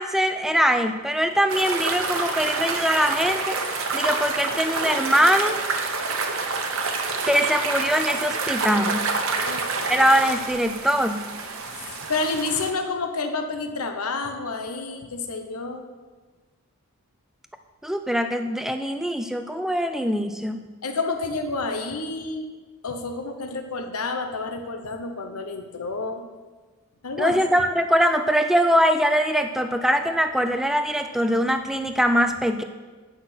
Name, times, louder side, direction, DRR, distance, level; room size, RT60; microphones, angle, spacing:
voice 1, 0.0-3.6 3.9-5.6 7.2-9.1 9.9-11.3 17.8-20.6 27.2-32.6, equal, ahead, 8 dB, 0.4 m, -22 dB
sound 1, 1.5-12.7, right 4 dB, 70° right, 1.0 m, -28 dB
voice 2, 9.4-10.0 11.7-15.9 20.8-22.4 22.8-26.2 27.0-27.4, left 3 dB, 85° left, 6 dB, 1.0 m, -29 dB
9.4 x 5.8 x 6.0 m, 1.4 s
head